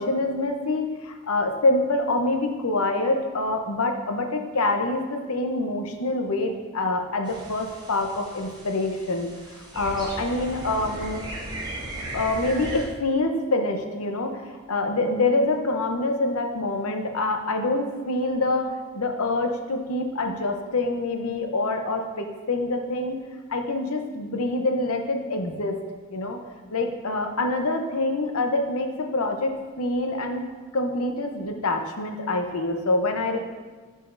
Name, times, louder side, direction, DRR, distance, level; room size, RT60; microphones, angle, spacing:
voice 1, 0.0-11.3 12.1-23.2 23.5-25.8 26.1-26.4 26.7-30.4 30.7-33.4, left 2 dB, 75° left, 4 dB, 0.7 m, -26 dB
sound 1, 7.2-12.9, right 1 dB, 20° right, 1.0 m, -37 dB
10.0 x 5.0 x 2.6 m, 1.3 s
head